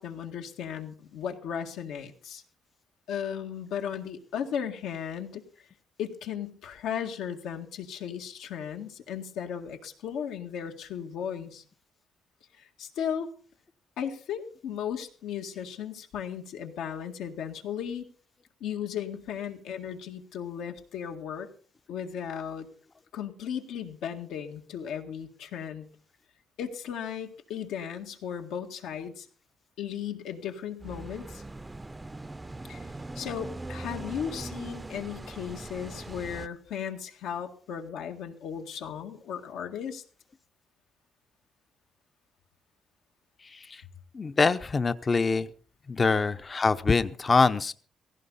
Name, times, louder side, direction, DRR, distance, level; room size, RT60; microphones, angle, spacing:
voice 1, 0.0-2.4 3.1-5.4 6.0-11.6 12.5-13.3 14.0-18.1 18.6-21.5 21.9-22.7 23.1-25.8 26.6-29.3 29.8-31.4 32.6-32.8 33.2-40.0, left 8 dB, 85° left, 4 dB, 2.0 m, -36 dB
sound 1, 30.8-36.5, right 2 dB, 15° right, 0.7 m, -40 dB
voice 2, 43.4-43.8 44.1-45.5 45.9-47.7, left 4 dB, 35° left, 11 dB, 0.7 m, -24 dB
17.0 x 15.5 x 4.1 m, 0.42 s
cardioid pair, 90°, 0 cm